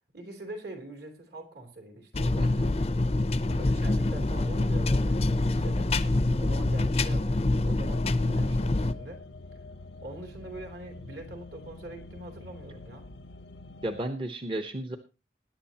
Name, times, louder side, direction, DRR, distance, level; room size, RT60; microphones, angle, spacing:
voice 1, 0.1-2.8 3.4-5.9 6.4-9.2 10.0-13.0, right 1 dB, 65° right, 3 dB, 3.1 m, -43 dB
sound 1, 2.1-8.9, left 2 dB, 35° left, 0.6 m, -26 dB
voice 2, 2.4-2.7 13.8-15.0, right 1 dB, 30° right, 7 dB, 0.8 m, -33 dB
sound 2, 7.8-14.0, left 2 dB, 85° left, 0.9 m, -46 dB
20.5 x 10.0 x 2.9 m, 0.29 s
head